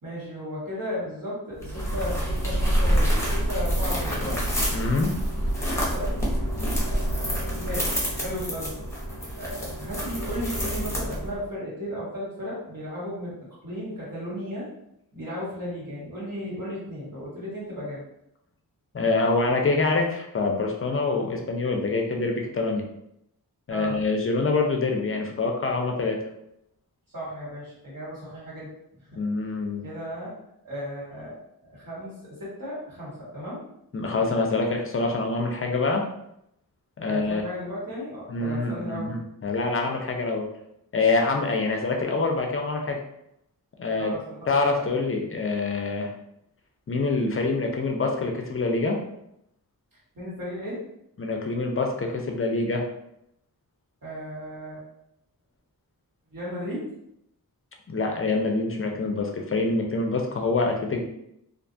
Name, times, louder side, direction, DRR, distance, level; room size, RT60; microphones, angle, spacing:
voice 1, 0.0-4.4 5.9-6.2 6.9-8.8 9.4-13.4 13.6-14.7 15.1-18.0 23.7-24.0 27.1-28.7 29.0-29.2 29.8-30.4 30.6-31.3 31.7-33.6 37.0-39.1 44.0-44.9 50.1-50.8 54.0-54.8 56.3-56.8, equal, 60° right, -8 dB, 1.4 m, -35 dB
sound 1, 1.6-11.4, equal, 5° left, 0.7 m, -27 dB
voice 2, 4.7-5.1 18.9-22.8 23.7-26.2 29.2-29.8 33.9-36.0 37.0-37.4 38.3-40.4 40.9-43.0 43.8-44.1 44.5-46.1 46.9-49.0 51.2-52.8 57.9-61.0, left 3 dB, 35° left, 2 dB, 0.4 m, -25 dB
2.5 x 2.2 x 2.6 m, 0.79 s
wide cardioid pair, 105°, 38 cm